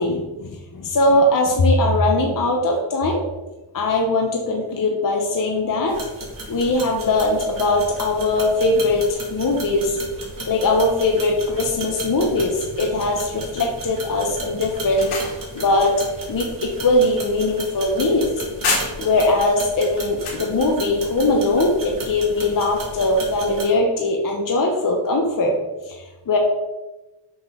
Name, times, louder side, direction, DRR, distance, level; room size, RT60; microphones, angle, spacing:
voice 1, 0.0-3.2 3.7-6.0 6.5-10.0 10.5-15.1 15.5-15.9 16.3-18.3 19.0-25.5 25.9-26.4, left 2 dB, 40° left, 1 dB, 1.0 m, -20 dB
sound 1, 5.9-23.6, right 1 dB, 40° right, 2.1 m, -34 dB
sound 2, 14.7-19.3 19.7-20.5, left 3 dB, 85° left, 1.7 m, -30 dB
5.9 x 5.5 x 3.8 m, 1.1 s
cardioid pair, 85°, 50 cm